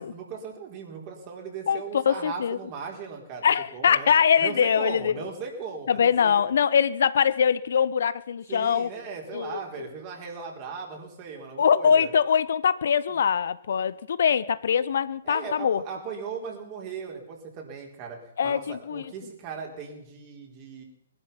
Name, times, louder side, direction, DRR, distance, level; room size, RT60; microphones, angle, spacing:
voice 1, 0.0-4.1 4.4-6.4 8.5-12.1 13.1-13.2 15.2-20.8, right 5 dB, 35° right, 4.5 m, -38 dB
voice 2, 1.7-2.6 3.4-5.2 5.9-8.9 9.3-9.9 11.6-15.8 18.4-19.0, left 7 dB, 65° left, 0.7 m, -23 dB
20.5 x 12.0 x 5.9 m
figure-of-eight pair, 125°, 0 cm